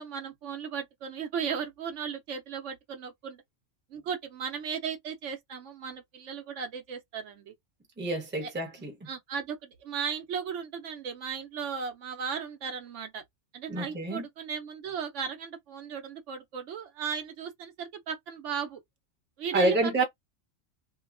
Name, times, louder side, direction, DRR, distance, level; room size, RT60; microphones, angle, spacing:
voice 1, 0.0-3.4 3.9-7.5 8.4-8.5 9.1-13.2 13.5-18.8 19.4-20.0, right 7 dB, 70° right, 0.9 m, -36 dB
voice 2, 8.0-8.9 13.7-14.2 19.5-20.0, right 2 dB, 10° right, 0.7 m, -28 dB
2.9 x 2.3 x 2.4 m
omnidirectional pair, 1.4 m